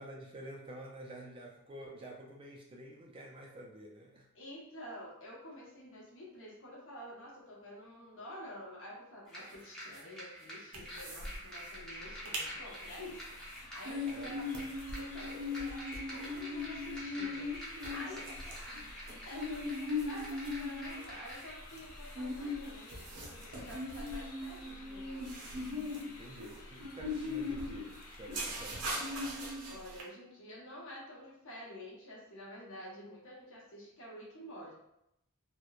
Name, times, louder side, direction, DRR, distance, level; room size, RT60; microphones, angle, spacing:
voice 1, 0.0-4.3 14.0-14.4 26.1-29.1, right 1 dB, 25° right, -1 dB, 0.3 m, -49 dB
voice 2, 4.3-14.5 14.8-15.8 16.1-17.5 17.9-18.3 19.2-25.6 29.6-34.7, equal, 60° left, -4 dB, 0.8 m, -49 dB
Gieger Counter Hot Zone Zombie Forest, 9.3-21.5, equal, 5° left, 0.7 m, -48 dB
sound 1, 10.7-11.4 11.6-11.7 12.1-12.5 12.9-30.0, left 2 dB, 90° right, 0.6 m, -39 dB
sound 2, 12.0-29.2, left 3 dB, 85° left, 0.5 m, -54 dB
2.9 x 2.0 x 2.3 m, 0.81 s
head